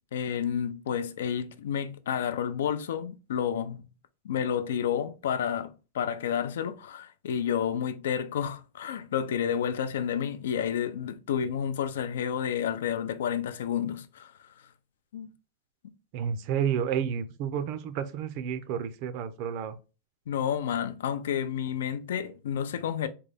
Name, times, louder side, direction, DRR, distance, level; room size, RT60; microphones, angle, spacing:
voice 1, 0.1-3.8 4.2-14.5 15.1-15.3 20.3-23.1, left 8 dB, 90° left, 0.4 m, -30 dB
voice 2, 16.1-19.8, right 8 dB, 45° right, 0.4 m, -30 dB
3.7 x 2.2 x 3.3 m
supercardioid pair, 160°, 0 cm